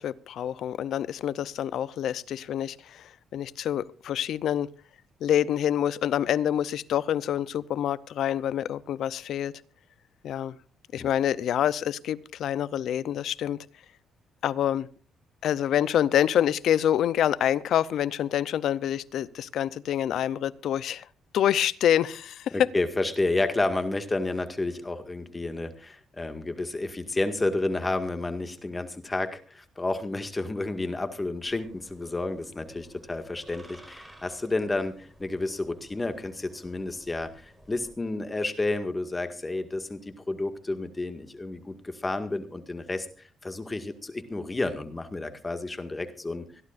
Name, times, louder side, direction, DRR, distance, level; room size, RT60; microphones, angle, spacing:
voice 1, 0.0-4.7 5.2-9.5 10.2-10.6 10.9-13.6 14.4-14.9 15.4-21.1 21.3-22.7, left 10 dB, 75° left, 19 dB, 0.6 m, -26 dB
voice 2, 22.5-43.1 43.4-46.5, left 2 dB, 20° left, 8 dB, 1.9 m, -31 dB
sound 1, 31.4-37.9, right 1 dB, 10° right, 4.6 m, -53 dB
25.5 x 12.0 x 2.5 m, 0.38 s
cardioid pair, 90°, 0 cm